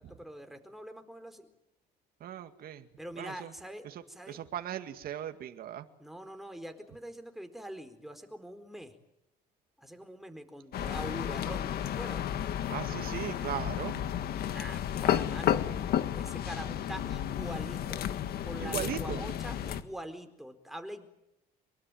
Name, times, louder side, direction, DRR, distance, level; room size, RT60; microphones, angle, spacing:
voice 1, 0.0-1.5 3.0-4.4 6.0-9.0 9.8-12.3 14.3-15.7 16.2-18.0 18.4-21.1, right 1 dB, ahead, 6 dB, 4.4 m, -44 dB
voice 2, 2.2-2.9 3.2-3.5 3.8-5.9 12.7-14.0 18.6-19.2, right 10 dB, 60° right, 7 dB, 2.1 m, -38 dB
sound 1, 10.7-19.8, left 10 dB, 65° left, 1.9 m, -32 dB
24.0 x 23.5 x 9.3 m, 0.83 s
cardioid pair, 110°, 17 cm